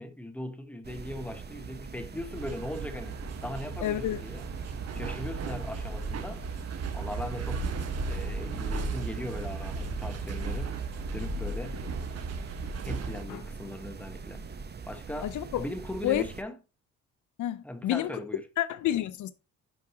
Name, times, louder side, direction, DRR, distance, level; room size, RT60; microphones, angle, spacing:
voice 1, 0.0-4.5 4.9-6.4 6.9-7.7 8.0-10.8 11.1-11.8 12.8-14.4 14.9-16.6 17.6-18.5, left 1 dB, 5° left, 1.2 m, -39 dB
sound 1, 0.8-16.4, right 5 dB, 35° right, 0.8 m, -43 dB
sound 2, 2.3-13.2, right 3 dB, 55° right, 1.2 m, -35 dB
voice 2, 3.8-4.2 13.3-13.4 15.2-15.7 16.0-16.2 17.4-18.1 18.6-19.3, left 13 dB, 75° left, 0.6 m, -29 dB
11.0 x 4.8 x 2.8 m
cardioid pair, 90°, 30 cm